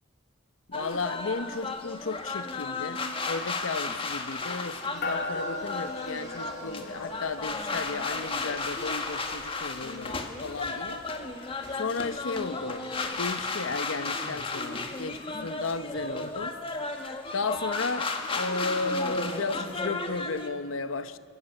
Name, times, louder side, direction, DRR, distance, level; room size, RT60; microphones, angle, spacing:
voice 1, 0.7-11.0 11.7-16.6 17.3-21.2, left 3 dB, 85° left, 0.9 m, -34 dB
sound 1, 0.7-20.5, left 3 dB, 30° left, 1.6 m, -34 dB
Singing, 3.2-13.1, right 1 dB, 20° right, 6.4 m, -52 dB
sound 2, 5.0-12.7, left 2 dB, 55° left, 2.9 m, -40 dB
29.0 x 13.5 x 8.8 m
head